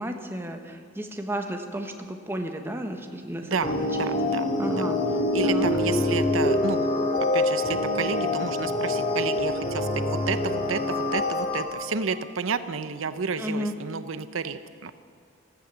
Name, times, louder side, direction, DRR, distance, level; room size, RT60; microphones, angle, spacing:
voice 1, 0.0-3.9 4.6-5.0 5.4-5.7 13.4-13.7, equal, 10° right, 4 dB, 1.2 m, -33 dB
voice 2, 3.4-4.8 5.3-6.9 7.3-14.9, right 5 dB, 90° right, 12 dB, 0.7 m, -31 dB
sound 1, 3.6-11.6, left 1 dB, 45° left, 2.2 m, -25 dB
14.5 x 14.0 x 7.0 m, 2.1 s
head